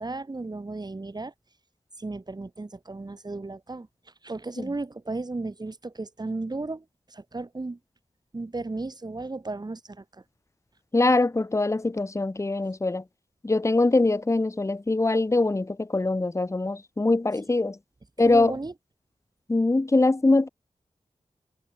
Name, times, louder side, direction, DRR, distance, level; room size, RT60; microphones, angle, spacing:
voice 1, 0.0-1.3 2.0-3.9 4.2-7.8 8.3-10.0 18.2-18.7, right 3 dB, 35° right, 2.0 m, -34 dB
voice 2, 10.9-13.0 13.4-17.8 18.2-18.6 19.5-20.5, left 2 dB, 25° left, 0.9 m, -23 dB
wide cardioid pair, 75°, 12 cm